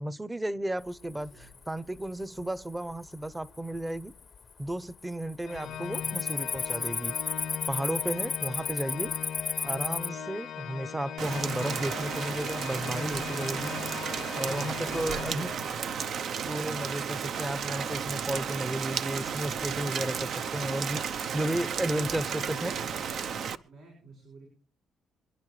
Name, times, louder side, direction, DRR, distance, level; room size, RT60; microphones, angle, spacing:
voice 1, 0.0-4.1 4.6-7.1 7.7-9.1 9.6-13.7 14.4-15.5 16.5-22.7, right 1 dB, 15° right, 0.8 m, -33 dB
Cricket, 1.1-1.6 2.0-2.4 3.0-3.1 3.7-4.4 4.6-4.9 5.2-10.1, left 5 dB, 40° left, 0.6 m, -33 dB
voice 2, 1.2-1.5 5.6-6.6 14.4-16.2 21.9-23.3 23.6-24.5, right 3 dB, 85° right, 6.8 m, -49 dB
Organ, 5.4-16.1, left 8 dB, 75° left, 0.7 m, -39 dB
Rain, 11.2-23.5, right 7 dB, 65° right, 0.8 m, -33 dB
26.5 x 11.0 x 3.3 m
cardioid pair, 90°, 0 cm